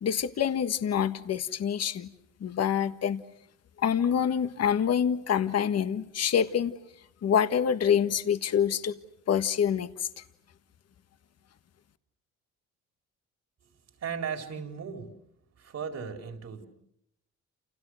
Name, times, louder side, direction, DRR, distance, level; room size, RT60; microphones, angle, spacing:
voice 1, 0.0-2.1 2.4-3.2 3.8-6.7 7.2-9.0 9.3-9.9, left 8 dB, 55° left, 1.6 m, -26 dB
voice 2, 13.6-16.7, right 6 dB, 60° right, 4.4 m, -37 dB
29.5 x 29.0 x 6.5 m
cardioid pair, 90°, 30 cm